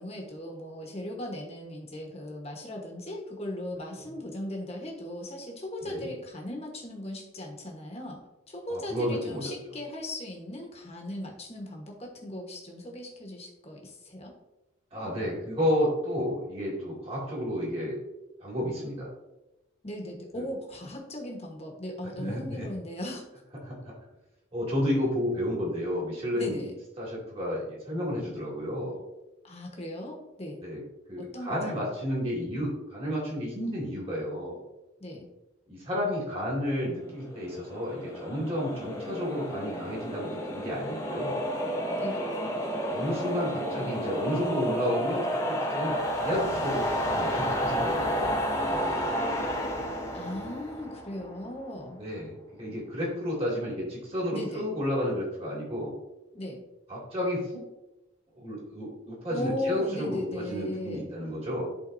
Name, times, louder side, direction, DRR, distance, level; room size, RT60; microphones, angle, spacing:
voice 1, 0.0-8.2 8.5-14.3 19.8-23.2 26.3-26.7 29.4-30.6 31.2-31.7 35.0-35.3 42.0-42.2 50.1-52.0 54.3-54.7 56.3-56.6 59.3-61.1, left 1 dB, 30° left, 0 dB, 1.2 m, -37 dB
voice 2, 8.7-9.5 14.9-18.0 18.4-19.1 20.3-20.5 22.2-22.7 23.6-23.9 24.5-26.6 27.0-29.0 30.6-30.8 31.1-34.6 35.7-41.4 42.9-48.9 49.2-49.3 52.0-55.9 56.9-57.6 58.4-61.6, equal, 30° right, -5 dB, 2.4 m, -31 dB
sound 1, 37.3-51.6, equal, 15° left, 0.9 m, -31 dB
11.5 x 3.9 x 2.7 m, 0.97 s
head